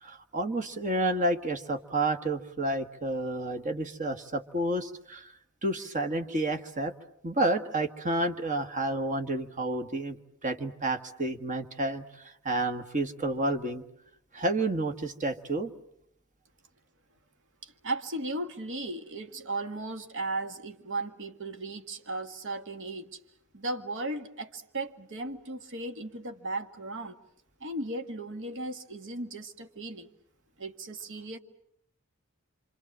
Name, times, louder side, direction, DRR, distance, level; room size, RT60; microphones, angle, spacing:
voice 1, 0.0-5.3 5.6-6.9 7.2-10.2 10.4-13.8 14.3-15.7, right 2 dB, 35° right, 8 dB, 1.6 m, -30 dB
voice 2, 17.6-23.2 23.5-27.2 27.6-30.1 30.6-31.4, right 2 dB, 60° right, 7 dB, 1.9 m, -36 dB
27.0 x 26.5 x 7.4 m, 0.73 s
head